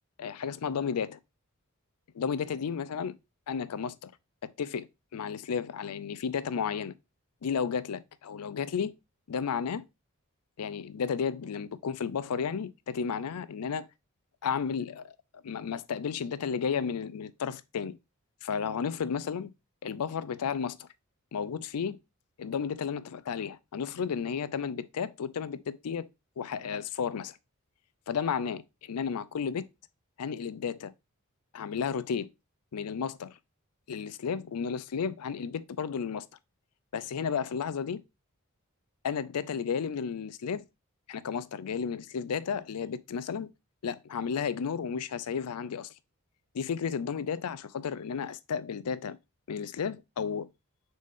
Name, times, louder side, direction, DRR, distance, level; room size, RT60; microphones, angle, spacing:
voice 1, 0.2-1.2 2.1-3.1 3.5-4.1 4.4-6.9 7.4-8.9 9.3-9.8 10.6-13.9 14.4-18.0 18.4-19.5 19.8-20.9 21.3-22.0 22.4-26.1 26.4-27.4 28.1-29.7 30.2-30.9 31.5-32.3 32.7-33.3 33.9-36.3 36.9-38.0 39.0-40.6 41.1-43.5 43.8-45.9 46.5-49.2 49.5-50.5, left 6 dB, 85° left, 0.4 m, -33 dB
6.3 x 4.2 x 3.5 m
head